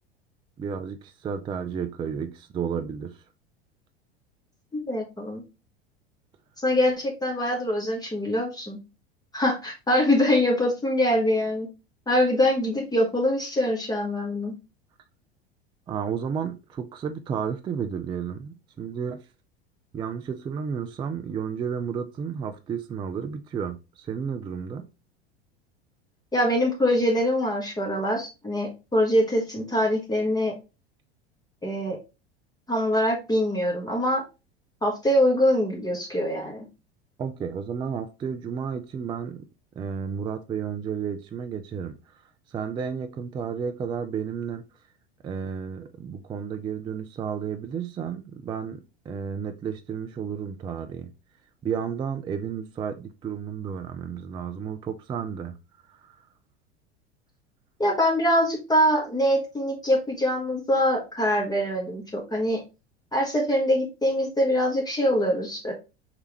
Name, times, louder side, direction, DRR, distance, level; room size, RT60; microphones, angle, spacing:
voice 1, 0.6-3.2 15.9-19.2 19.9-24.9 37.2-39.5 39.8-42.2 42.5-44.6 45.2-51.1 51.6-55.5 55.9-56.2, right 7 dB, 15° right, 0.3 m, -32 dB
voice 2, 4.7-5.4 6.6-8.8 9.3-11.7 12.1-14.5 26.3-30.5 31.6-32.0 32.7-34.2 34.8-36.6 57.8-62.6 63.1-65.7, left 1 dB, 10° left, 1.2 m, -24 dB
4.7 x 3.3 x 2.9 m
hypercardioid pair, 80°, 32 cm